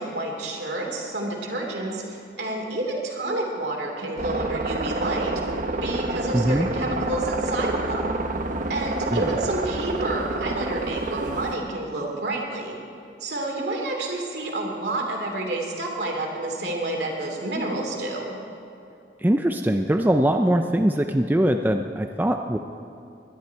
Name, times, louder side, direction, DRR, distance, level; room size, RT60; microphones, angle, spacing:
voice 1, 0.0-5.3 5.8-8.2 8.7-12.8 13.2-18.4, right 2 dB, 65° right, 0 dB, 2.6 m, -29 dB
sound 1, 4.2-11.6, right 2 dB, 45° right, 0.9 m, -28 dB
voice 2, 6.3-6.7 9.1-9.3 19.2-22.6, right 1 dB, 10° right, 5 dB, 0.4 m, -22 dB
20.5 x 11.5 x 4.6 m, 2.7 s
head